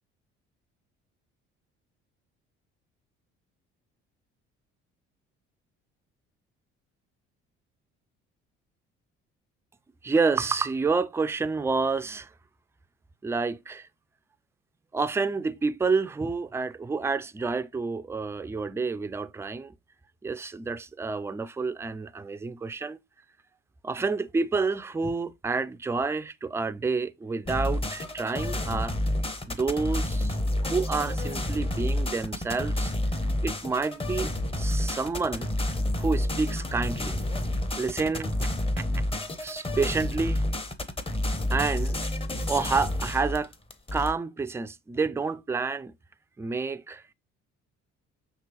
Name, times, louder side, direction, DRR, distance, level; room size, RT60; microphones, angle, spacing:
voice 1, 10.0-12.3 13.2-13.9 14.9-19.7 20.2-23.0 23.8-28.9 29.4-32.9 33.4-34.3 34.6-35.5 36.0-37.2 37.8-39.1 39.4-40.4 41.5-42.0 42.5-43.5 43.9-45.9 46.4-47.0, right 4 dB, 10° right, 0.3 m, -29 dB
sound 1, 27.5-44.1, left 1 dB, 20° left, 0.8 m, -29 dB
5.8 x 2.9 x 3.0 m
hypercardioid pair, 55°, 31 cm